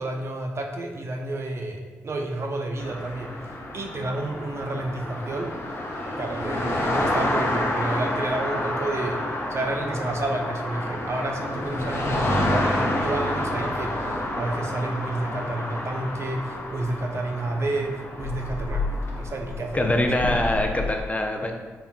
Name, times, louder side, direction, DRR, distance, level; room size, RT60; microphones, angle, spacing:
voice 1, 0.0-3.3 3.7-5.5 6.1-9.2 9.5-20.1, right 2 dB, 50° right, 2 dB, 0.5 m, -30 dB
sound 1, 2.8-21.0, left 1 dB, 45° left, 0.8 m, -29 dB
voice 2, 19.7-21.5, left 1 dB, 25° left, 3 dB, 0.5 m, -23 dB
4.1 x 3.6 x 2.2 m, 1.4 s
supercardioid pair, 45°, 6 cm